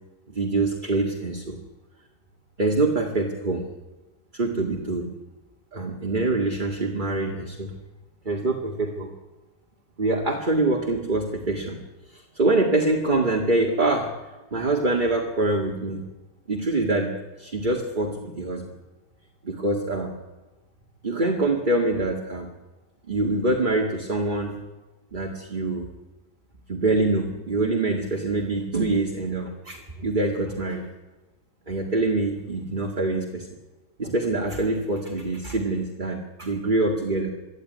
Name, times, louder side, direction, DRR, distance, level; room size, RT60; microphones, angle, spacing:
voice 1, 0.3-1.6 2.6-3.6 4.3-5.1 5.7-7.7 8.3-9.1 10.0-11.8 12.1-14.1 14.5-16.0 16.5-17.1 17.4-18.7 19.4-20.1 21.0-22.5 23.1-24.6 25.1-25.9 26.7-30.8 31.7-33.5 34.0-37.3, right 2 dB, 25° right, 0 dB, 2.2 m, -25 dB
24.0 x 14.0 x 9.5 m, 1.1 s
omnidirectional pair, 2.0 m